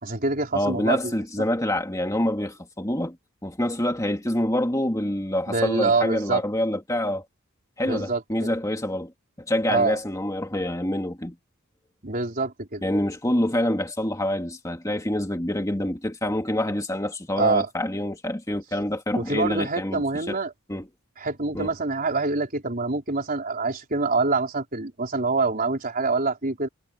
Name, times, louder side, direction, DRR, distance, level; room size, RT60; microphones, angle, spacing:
voice 1, 0.0-1.0 5.5-6.4 7.8-8.5 9.7-10.0 12.0-12.8 17.4-17.7 19.1-20.5 21.2-26.7, right 3 dB, 40° right, 4.2 m, -25 dB
voice 2, 0.5-3.2 3.4-7.3 7.8-9.1 9.5-11.3 12.8-20.0 20.3-20.4 20.7-20.9 21.5-21.7, left 1 dB, 15° left, 2.1 m, -26 dB
head